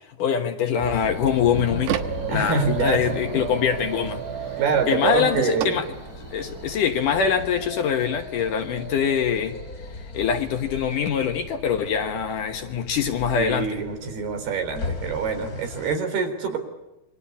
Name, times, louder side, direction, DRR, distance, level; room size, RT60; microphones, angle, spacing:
voice 1, 0.2-2.0 2.3-4.2 4.9-5.9 6.3-9.6 10.1-13.9, left 7 dB, 60° left, 7 dB, 2.5 m, -24 dB
sound 1, 0.8-16.0, left 2 dB, 25° left, 2.9 m, -37 dB
sound 2, 0.8-6.8, right 11 dB, 85° right, 3.5 m, -33 dB
voice 2, 2.3-3.2 4.6-5.8 13.4-16.6, right 5 dB, 70° right, 7 dB, 5.7 m, -25 dB
27.5 x 24.0 x 8.5 m, 0.97 s
omnidirectional pair, 4.7 m